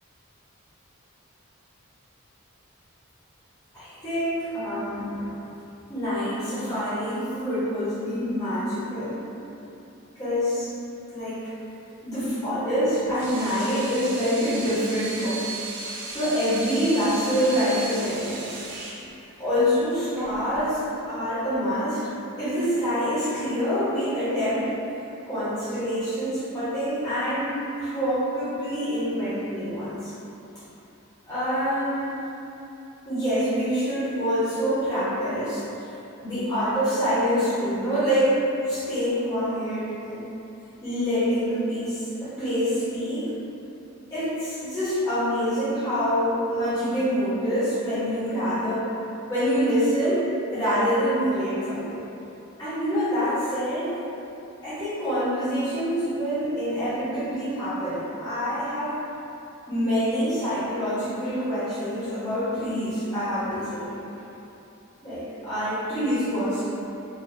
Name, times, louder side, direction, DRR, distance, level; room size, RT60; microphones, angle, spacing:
voice 1, 3.7-5.3 5.9-9.2 10.1-10.7 11.1-11.4 12.0-15.4 16.1-18.6 19.4-22.0 22.4-24.7 25.2-30.1 31.3-32.3 33.1-35.6 36.2-40.3 40.8-43.3 44.1-48.9 49.3-52.0 52.6-54.0 54.6-58.9 59.7-64.0 65.0-66.7, equal, 20° left, -15 dB, 1.1 m, -26 dB
Water tap faucet / Sink (filling or washing), 12.9-21.0, right 3 dB, 55° right, 0.5 m, -36 dB
4.1 x 2.5 x 2.7 m, 2.9 s
head